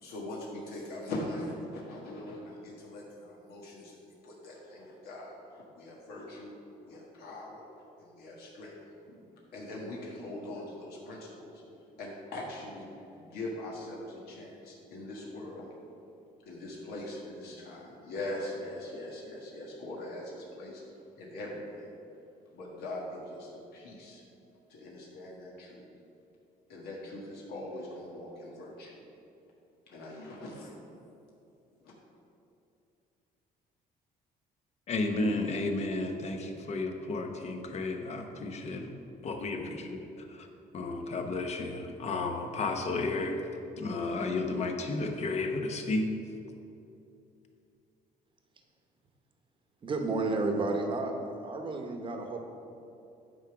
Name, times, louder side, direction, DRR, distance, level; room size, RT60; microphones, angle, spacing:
voice 1, 0.0-6.5 6.8-8.7 9.1-9.2 9.5-11.6 12.0-15.7 16.4-20.8 21.2-22.0 22.5-24.2 24.7-25.9 26.7-29.0 29.9-30.7 31.8-31.9, left 1 dB, 80° left, -3 dB, 1.4 m, -42 dB
voice 2, 34.9-38.9 39.2-40.5 40.7-43.4 43.8-46.1, left 2 dB, 45° left, 4 dB, 0.9 m, -32 dB
voice 3, 49.8-51.1 51.4-52.4, right 3 dB, 30° right, 3 dB, 0.9 m, -31 dB
9.3 x 3.6 x 5.9 m, 2.7 s
cardioid pair, 125°, 16 cm